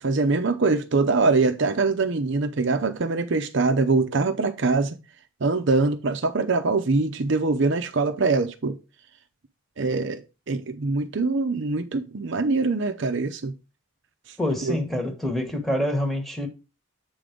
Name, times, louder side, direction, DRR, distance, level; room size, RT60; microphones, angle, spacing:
voice 1, 0.0-5.0 5.4-8.8 9.8-10.2 10.5-13.5 14.6-14.8, right 3 dB, 60° right, 0.6 m, -23 dB
voice 2, 14.4-16.5, left 1 dB, ahead, 1.3 m, -26 dB
7.7 x 3.8 x 5.0 m
head